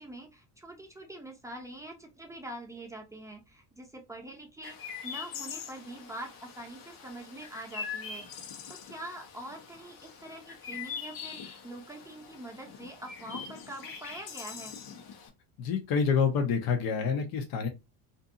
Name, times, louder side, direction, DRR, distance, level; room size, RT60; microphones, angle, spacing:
voice 1, 0.0-8.3 8.7-14.8, right 1 dB, 5° right, 0.7 m, -44 dB
Chirp tweet, 4.6-15.3, left 6 dB, 80° left, 1.0 m, -43 dB
voice 2, 15.6-17.7, left 6 dB, 55° left, 0.7 m, -27 dB
2.6 x 2.5 x 2.5 m
supercardioid pair, 100°, 43 cm